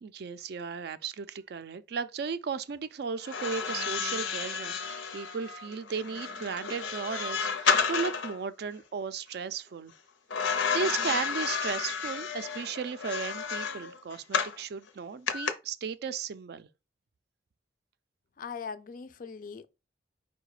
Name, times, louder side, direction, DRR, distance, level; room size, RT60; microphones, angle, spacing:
voice 1, 0.0-9.9 10.7-16.7, right 5 dB, 55° right, 0.3 m, -35 dB
sound 1, 3.2-8.4 10.3-14.6 15.3-15.5, left 5 dB, 85° left, 0.6 m, -31 dB
voice 2, 18.4-19.7, left 5 dB, 45° left, 0.3 m, -40 dB
4.7 x 2.2 x 4.7 m
head